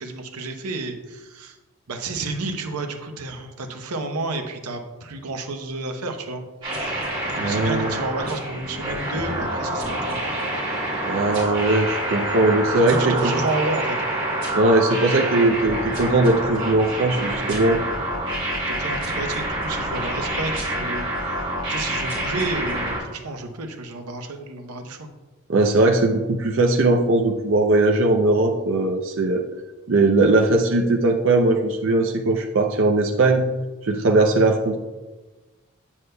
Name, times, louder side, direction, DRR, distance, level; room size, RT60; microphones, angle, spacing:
voice 1, 0.0-1.6 1.9-6.4 6.7-10.2 12.7-14.0 18.6-21.1 21.7-25.1, right 2 dB, 85° right, 5 dB, 0.8 m, -31 dB
sound 1, 6.6-23.0, right 1 dB, 20° right, 2.2 m, -27 dB
voice 2, 7.4-7.9 11.1-13.3 14.5-17.8 25.5-29.4 29.9-33.4 33.8-34.8, right 2 dB, 55° right, 2 dB, 0.5 m, -19 dB
7.9 x 7.1 x 2.2 m, 1.2 s
head